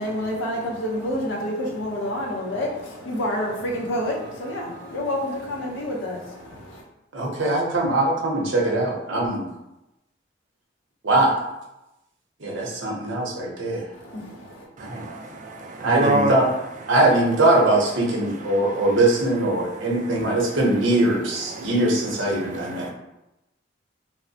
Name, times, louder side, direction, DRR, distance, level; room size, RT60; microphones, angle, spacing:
voice 1, 0.0-6.8 13.9-14.7, left 1 dB, 75° left, 0.7 m, -28 dB
voice 2, 7.1-9.4 11.0-11.5 12.4-13.9 14.8-15.1 15.8-16.5 16.9-22.9, right 2 dB, 75° right, 0.7 m, -21 dB
voice 3, 14.8-16.3 18.4-18.9 19.5-20.4 21.5-21.9 22.2-22.9, right 2 dB, 40° right, 0.4 m, -29 dB
3.0 x 2.0 x 2.6 m
head